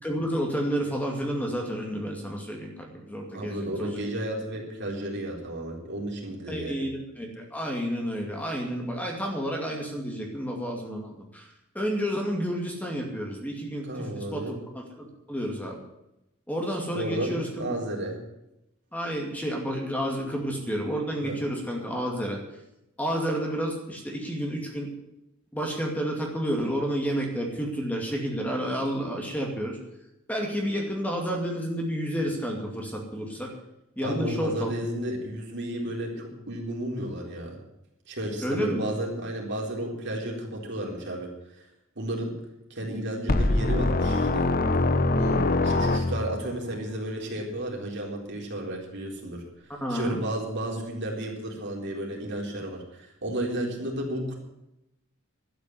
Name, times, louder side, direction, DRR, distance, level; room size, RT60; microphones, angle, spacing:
voice 1, 0.0-4.0 6.5-11.5 11.7-15.8 16.5-17.7 18.9-22.4 23.0-24.9 25.5-29.8 30.3-33.5 34.0-34.7 38.4-38.8 49.8-50.2, equal, 5° left, 0 dB, 2.5 m, -30 dB
voice 2, 3.3-6.8 13.9-14.6 16.9-18.2 21.2-21.4 34.0-37.6 38.1-41.3 41.6-41.7 42.0-42.4 42.7-44.5 45.2-49.4 49.9-54.4, right 1 dB, 55° right, -1 dB, 4.1 m, -33 dB
sound 1, 43.3-46.5, left 2 dB, 45° left, 1.0 m, -23 dB
12.5 x 9.5 x 9.9 m, 0.88 s
head